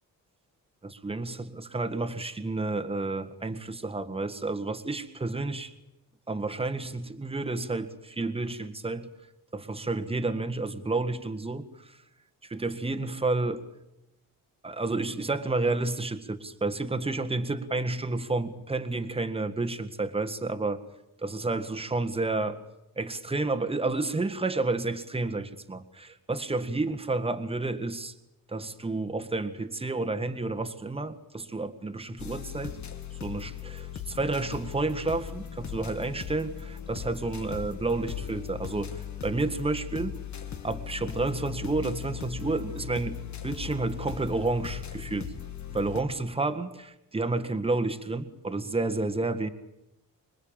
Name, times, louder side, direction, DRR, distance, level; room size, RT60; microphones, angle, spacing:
voice 1, 0.8-5.7 6.3-9.1 9.5-12.0 12.4-13.6 14.6-20.8 21.2-22.6 23.0-28.1 28.5-32.8 33.2-40.1 40.6-45.3 45.7-49.5, right 3 dB, 15° right, 8 dB, 1.7 m, -30 dB
sound 1, 32.2-46.0, left 9 dB, 55° left, 2.5 m, -38 dB
26.0 x 22.0 x 9.0 m, 0.87 s
wide cardioid pair, 140°, 34 cm